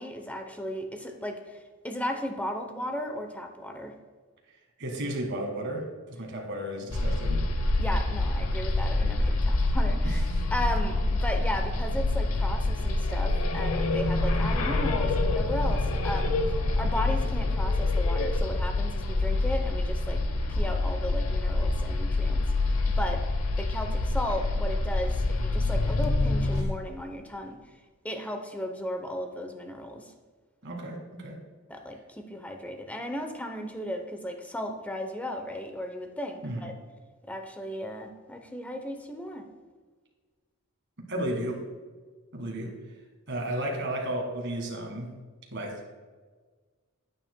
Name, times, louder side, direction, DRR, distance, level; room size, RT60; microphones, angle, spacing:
voice 1, 0.0-3.9 7.8-10.2 10.5-16.4 16.8-20.2 20.5-22.4 23.0-23.2 23.6-27.6 28.0-30.1 31.7-36.7 37.3-39.4, left 1 dB, 5° left, 5 dB, 0.7 m, -35 dB
voice 2, 4.8-7.4 10.0-10.2 30.6-31.4 36.4-36.7 41.0-41.6 42.3-43.0 43.3-45.1 45.5-45.8, right 1 dB, 60° right, 0 dB, 1.7 m, -33 dB
sound 1, 6.9-26.6, left 2 dB, 80° left, 0.8 m, -26 dB
9.7 x 8.7 x 2.2 m, 1.4 s
head